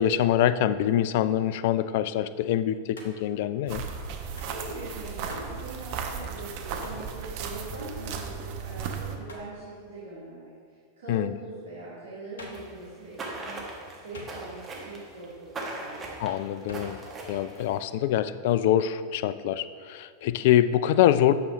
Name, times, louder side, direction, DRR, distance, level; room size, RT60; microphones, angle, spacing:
voice 1, 0.0-3.8 11.1-11.3 16.2-17.0 17.3-21.3, left 11 dB, 50° left, 14 dB, 0.3 m, -24 dB
Hands, 2.9-3.4 4.4-4.6 5.3-5.6 6.8-7.1 9.3-9.6 12.4-12.7 14.1-14.7 16.7-17.0, left 2 dB, 65° left, 1.1 m, -46 dB
sound 1, 3.7-9.2, right 6 dB, 45° right, 0.8 m, -35 dB
voice 2, 4.5-13.6 14.0-16.0, right 2 dB, 65° right, -9 dB, 2.1 m, -42 dB
sound 2, 12.5-17.9, right 2 dB, 20° right, 1.5 m, -39 dB
9.4 x 6.8 x 3.4 m, 2.1 s
figure-of-eight pair, 90°, 0 cm